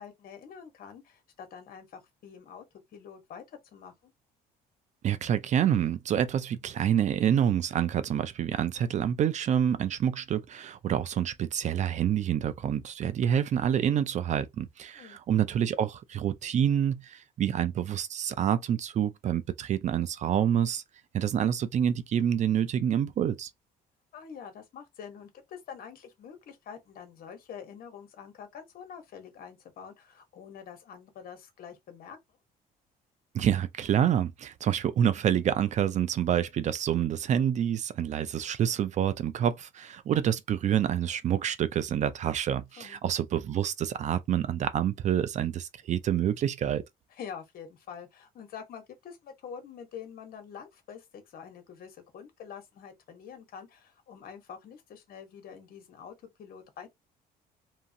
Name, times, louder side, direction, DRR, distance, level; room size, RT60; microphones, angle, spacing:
voice 1, 0.0-2.6 2.9-4.1 14.9-15.2 24.1-32.2 42.8-43.0 47.1-56.9, left 7 dB, 60° left, 1.1 m, -46 dB
voice 2, 5.0-20.8 21.1-23.5 33.3-46.8, right 9 dB, 45° right, 0.4 m, -27 dB
2.8 x 2.5 x 2.6 m
cardioid pair, 110°, 17 cm